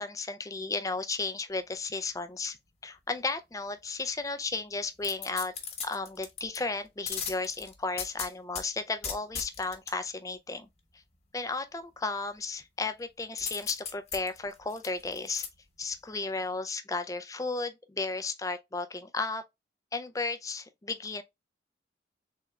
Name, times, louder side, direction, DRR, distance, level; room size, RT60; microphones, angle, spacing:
voice 1, 0.0-2.6 2.8-5.5 5.8-10.7 11.3-15.5 15.8-19.4 19.9-21.2, left 3 dB, 20° left, 0.4 m, -34 dB
handcuffs taken out and closed, 5.0-6.6 7.1-8.6 9.0-9.9 13.4-15.5 15.9-16.0, left 6 dB, 35° left, 1.0 m, -37 dB
3.7 x 3.4 x 3.1 m
head